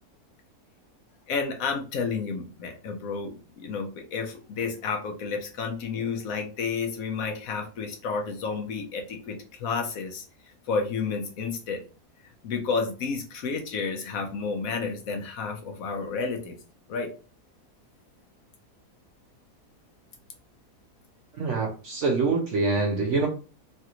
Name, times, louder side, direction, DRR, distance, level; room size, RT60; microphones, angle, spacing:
voice 1, 1.3-10.2 10.7-11.8 12.4-16.6 16.9-17.1, left 5 dB, 70° left, 4 dB, 1.0 m, -31 dB
voice 2, 21.4-23.3, right 3 dB, 65° right, 1 dB, 0.7 m, -25 dB
3.2 x 2.4 x 2.9 m, 0.35 s
omnidirectional pair, 1.7 m